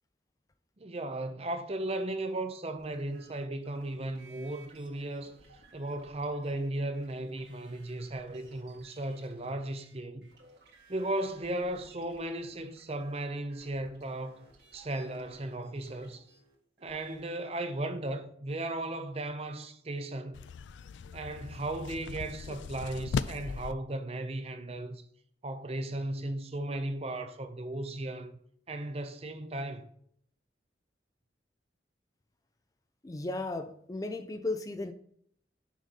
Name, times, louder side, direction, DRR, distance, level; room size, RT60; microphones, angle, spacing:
voice 1, 0.8-5.4 5.7-10.3 10.9-14.5 14.7-16.2 16.8-20.4 21.1-25.0 25.4-28.3 28.7-29.8, right 1 dB, 35° right, 0.7 m, -36 dB
sound 1, 2.8-17.3, right 3 dB, 65° right, 1.9 m, -60 dB
sound 2, 20.3-23.7, left 5 dB, 85° left, 0.4 m, -38 dB
voice 2, 33.0-34.9, left 2 dB, 20° left, 0.4 m, -35 dB
6.2 x 5.3 x 4.1 m
head